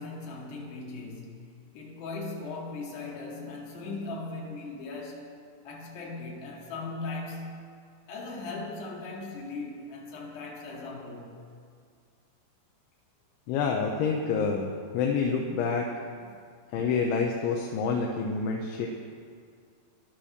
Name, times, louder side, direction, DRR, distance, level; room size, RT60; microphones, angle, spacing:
voice 1, 0.0-5.3 5.6-7.8 8.1-11.4, left 3 dB, 65° left, -3 dB, 4.4 m, -38 dB
voice 2, 13.5-15.9 16.7-18.9, left 5 dB, 80° left, 0 dB, 3.4 m, -28 dB
15.5 x 12.0 x 6.6 m, 2.2 s
omnidirectional pair, 5.4 m